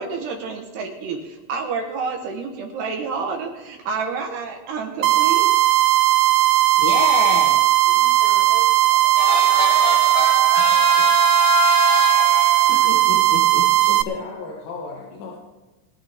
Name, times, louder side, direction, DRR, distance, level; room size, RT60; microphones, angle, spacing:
voice 1, 0.0-5.5, right 5 dB, 70° right, 2 dB, 2.9 m, -29 dB
sound 1, 5.0-14.0, right 15 dB, 85° right, 2.5 m, -17 dB
voice 2, 6.8-7.6 9.2-13.7, left 6 dB, 70° left, -1 dB, 2.4 m, -25 dB
voice 3, 7.9-8.7 13.8-15.4, left 4 dB, 90° left, -3 dB, 4.6 m, -35 dB
22.5 x 11.5 x 3.6 m, 1.2 s
omnidirectional pair, 5.9 m